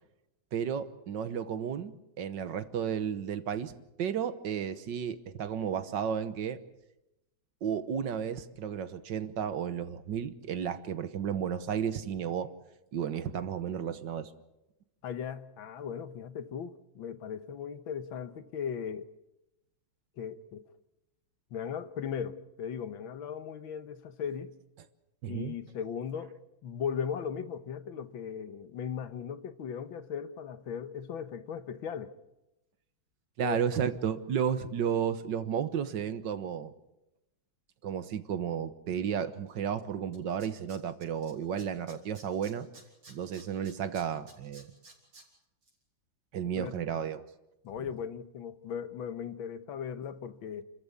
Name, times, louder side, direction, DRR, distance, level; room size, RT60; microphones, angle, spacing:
voice 1, 0.5-3.7 4.0-6.6 7.6-12.5 12.9-14.3 25.2-25.6 33.4-36.7 37.8-42.7 43.1-44.7 46.3-47.2, right 8 dB, 65° right, 1.7 m, -33 dB
voice 2, 15.0-19.1 20.2-20.7 21.5-24.6 25.3-26.4 26.6-32.1 33.4-33.6 46.6-46.7 47.6-50.6, left 7 dB, 75° left, 1.8 m, -37 dB
Tools, 39.8-39.9 40.1-41.3 41.6-45.2 45.6-45.7, right 2 dB, 85° right, 5.5 m, -53 dB
29.0 x 14.0 x 8.4 m
omnidirectional pair, 2.2 m